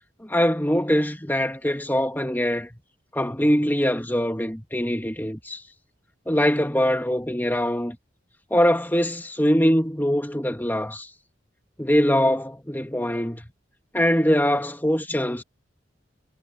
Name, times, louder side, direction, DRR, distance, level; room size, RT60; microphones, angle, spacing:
voice 1, 0.2-2.8 3.1-5.6 6.3-8.0 8.5-11.1 11.8-13.5 13.9-15.4, equal, 10° left, 2.3 m, -23 dB
head